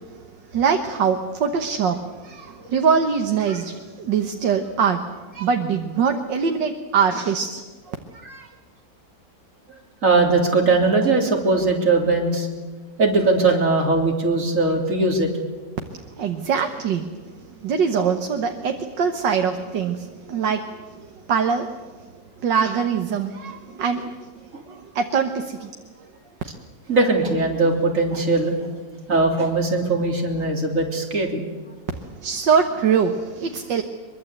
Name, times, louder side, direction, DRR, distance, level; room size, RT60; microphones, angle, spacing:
voice 1, 0.5-2.0 2.2-5.0 5.4-8.0 16.2-17.1 17.6-21.0 21.3-21.7 22.4-24.1 24.7-25.7 32.1-33.8, right 6 dB, 80° right, 4 dB, 2.0 m, -23 dB
voice 2, 10.0-12.5 13.0-15.3 24.5-24.6 26.9-28.7 29.1-31.4, right 3 dB, 45° right, 1 dB, 3.9 m, -20 dB
23.5 x 23.0 x 8.2 m, 1.3 s
omnidirectional pair, 1.9 m